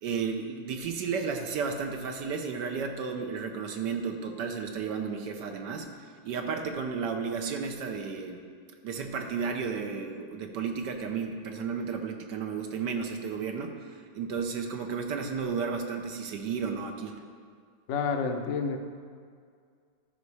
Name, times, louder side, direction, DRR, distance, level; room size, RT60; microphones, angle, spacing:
voice 1, 0.0-5.9 6.2-8.4 8.8-17.2, right 5 dB, 65° right, 4 dB, 1.3 m, -33 dB
voice 2, 17.9-18.8, left 5 dB, 90° left, 4 dB, 0.6 m, -29 dB
12.5 x 5.3 x 4.7 m, 2.1 s
omnidirectional pair, 2.2 m